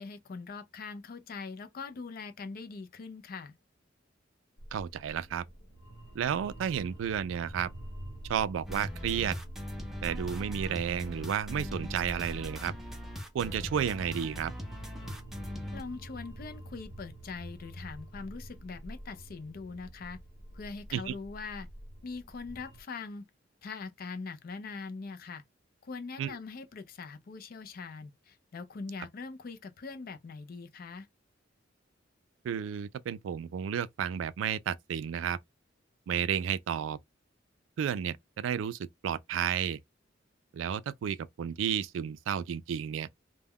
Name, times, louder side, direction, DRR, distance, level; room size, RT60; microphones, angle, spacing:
voice 1, 0.0-3.5 15.7-20.2 20.5-21.7 22.0-23.2 23.6-25.4 25.8-31.1, left 4 dB, 50° left, 0.4 m, -42 dB
sound 1, 4.6-22.8, right 1 dB, 70° left, 0.9 m, -47 dB
voice 2, 4.7-5.4 6.1-7.7 8.3-9.3 10.0-12.7 13.3-14.5 20.9-21.2 26.2-26.4 32.4-35.4 36.1-37.0 37.8-39.8 40.5-43.1, right 8 dB, 75° right, 0.3 m, -32 dB
sound 2, 8.7-15.8, equal, ahead, 0.5 m, -40 dB
2.2 x 2.1 x 3.5 m
head